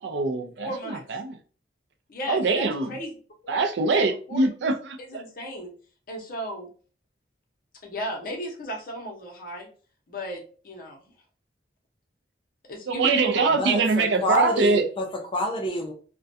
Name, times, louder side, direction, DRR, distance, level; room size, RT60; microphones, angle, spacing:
voice 1, 0.0-1.3 2.3-2.9 3.5-5.2 12.9-14.9, right 3 dB, 70° right, 0.4 m, -23 dB
voice 2, 0.6-1.0 2.1-3.1 3.4-3.6 3.9-4.0 4.3-4.5 5.0-5.7 6.1-6.7 7.8-9.7 10.1-11.1 12.7-13.6, equal, 50° left, 0.7 m, -35 dB
voice 3, 13.6-15.9, equal, 30° left, 0.4 m, -27 dB
2.4 x 2.1 x 2.6 m
head